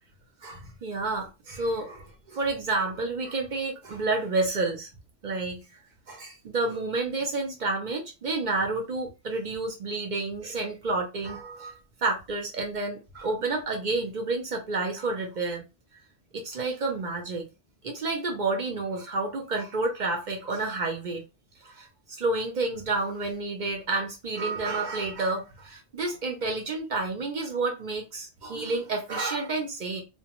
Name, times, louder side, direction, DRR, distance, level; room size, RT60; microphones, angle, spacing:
voice 1, 0.4-4.9 5.2-5.6 6.1-11.7 12.0-15.6 16.3-17.4 17.8-21.2 21.6-30.0, right 3 dB, 50° right, 0.6 m, -30 dB
2.2 x 2.1 x 2.9 m
omnidirectional pair, 1.2 m